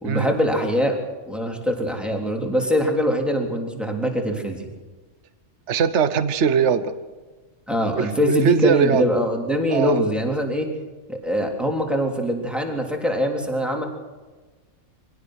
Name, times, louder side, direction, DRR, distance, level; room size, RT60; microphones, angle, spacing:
voice 1, 0.0-0.9 1.3-4.7 7.7-10.7 11.1-13.8, equal, ahead, 1 dB, 3.4 m, -23 dB
voice 2, 5.7-6.9 7.9-9.0 9.7-10.0, right 7 dB, 55° right, 11 dB, 1.3 m, -21 dB
24.0 x 17.5 x 6.5 m, 1.3 s
omnidirectional pair, 1.5 m